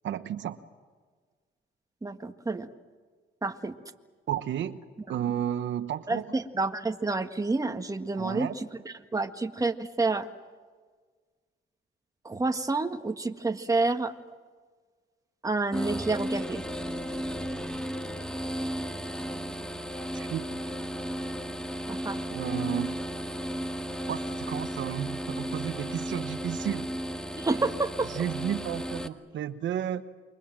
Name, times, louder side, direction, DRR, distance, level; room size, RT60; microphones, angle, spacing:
voice 1, 0.0-0.6 4.3-4.8 5.1-6.3 8.2-8.6 20.1-20.5 22.3-23.0 24.1-26.9 27.5-27.7 28.0-30.0, right 10 dB, 70° right, 10 dB, 1.1 m, -32 dB
voice 2, 2.0-2.7 3.4-3.7 6.1-8.5 9.1-10.3 12.2-14.1 15.4-16.6 21.9-22.2 27.4-28.1, right 3 dB, 15° right, 6 dB, 1.7 m, -29 dB
sound 1, 15.7-29.1, equal, 5° left, 1.9 m, -34 dB
28.5 x 24.0 x 7.6 m, 1.5 s
cardioid pair, 90°, 20 cm